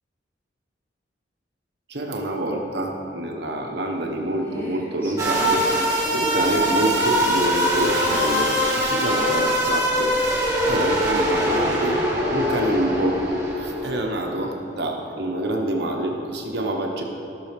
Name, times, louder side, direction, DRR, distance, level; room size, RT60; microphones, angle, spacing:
voice 1, 1.9-5.7 6.1-10.1 10.6-12.0 12.3-13.3 13.6-17.0, right 1 dB, 60° right, 1 dB, 1.2 m, -26 dB
Female singing, 3.9-14.9, equal, 15° left, 1.2 m, -38 dB
sound 1, 5.2-14.0, equal, 20° right, 1.7 m, -22 dB
15.5 x 6.2 x 3.3 m, 2.8 s
head